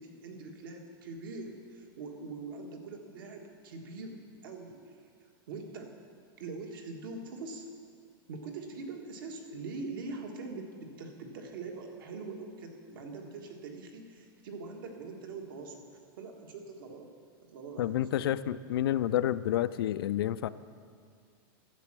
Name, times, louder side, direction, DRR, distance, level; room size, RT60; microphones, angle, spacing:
voice 1, 0.0-5.0 5.5-5.9 6.4-7.6 8.3-15.8 16.2-17.1 17.4-18.3, right 3 dB, 65° right, 3 dB, 1.6 m, -43 dB
voice 2, 17.8-20.5, left 12 dB, 85° left, 15 dB, 0.4 m, -29 dB
12.0 x 7.6 x 6.1 m, 2.2 s
supercardioid pair, 170°, 12 cm